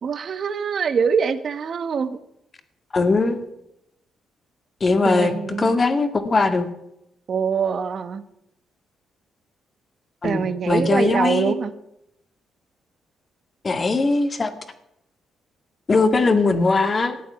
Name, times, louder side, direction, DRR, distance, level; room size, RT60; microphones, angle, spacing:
voice 1, 0.0-2.2 5.0-5.7 7.3-8.2 10.2-11.7, right 6 dB, 60° right, 12 dB, 1.2 m, -24 dB
voice 2, 2.9-3.4 4.8-5.3 5.6-6.7 10.2-11.6 13.6-14.5 15.9-17.2, left 3 dB, 40° left, 8 dB, 2.1 m, -20 dB
14.5 x 8.7 x 8.6 m, 0.82 s
supercardioid pair, 65°, 0 cm